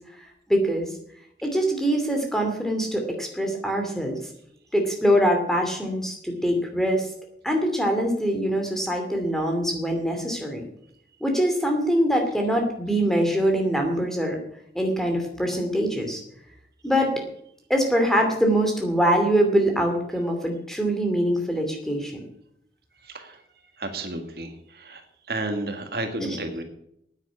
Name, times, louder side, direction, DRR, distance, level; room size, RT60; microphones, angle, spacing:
voice 1, 0.5-0.9 1.4-4.2 4.7-7.1 7.4-10.6 11.2-14.4 14.7-16.2 16.8-17.2 17.7-22.2 26.2-26.3, equal, ahead, 3 dB, 2.6 m, -23 dB
voice 2, 23.0-26.6, right 2 dB, 60° right, 5 dB, 1.8 m, -33 dB
9.6 x 9.3 x 9.7 m, 0.74 s
head